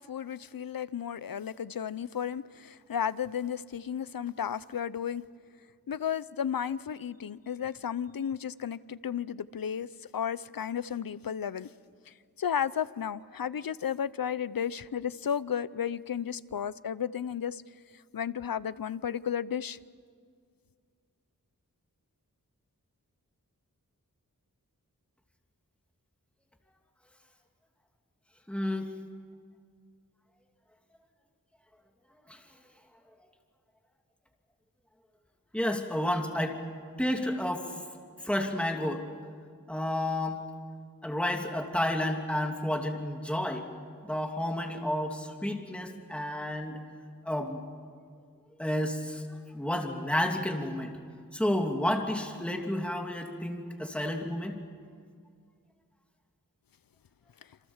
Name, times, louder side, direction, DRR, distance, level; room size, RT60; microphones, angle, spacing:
voice 1, 0.0-5.2 5.9-11.7 12.1-17.6 17.9-19.8, left 8 dB, 80° left, 17 dB, 0.7 m, -33 dB
voice 2, 28.5-28.9 32.3-32.4 35.5-36.6 37.0-37.8 38.2-39.0 39.7-40.4 41.0-43.7 44.0-46.8 47.2-47.6 48.6-51.0 51.3-54.6, left 1 dB, 5° left, 2 dB, 2.6 m, -31 dB
27.5 x 27.5 x 7.3 m, 2.1 s
wide cardioid pair, 65°, 34 cm